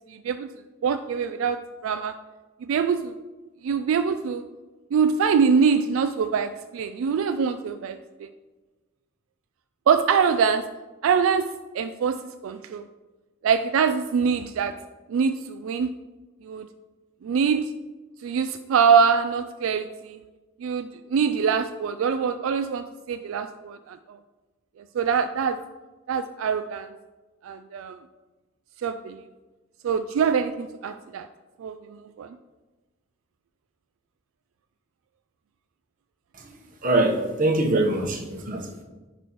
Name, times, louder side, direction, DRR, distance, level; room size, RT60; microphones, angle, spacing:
voice 1, 0.1-0.5 0.8-2.2 2.6-3.1 3.6-4.4 4.9-8.3 9.9-10.7 11.0-11.5 11.7-12.9 13.4-14.8 15.1-15.9 16.4-16.7 17.2-17.7 18.2-20.2 20.6-24.2 24.9-25.6 26.1-26.9 27.4-28.0 28.8-29.2 29.8-31.3 31.6-32.3, right 6 dB, 75° right, 9 dB, 0.3 m, -24 dB
voice 2, 36.8-38.8, right 2 dB, 40° right, 2 dB, 1.0 m, -23 dB
10.0 x 5.3 x 3.0 m, 1.2 s
head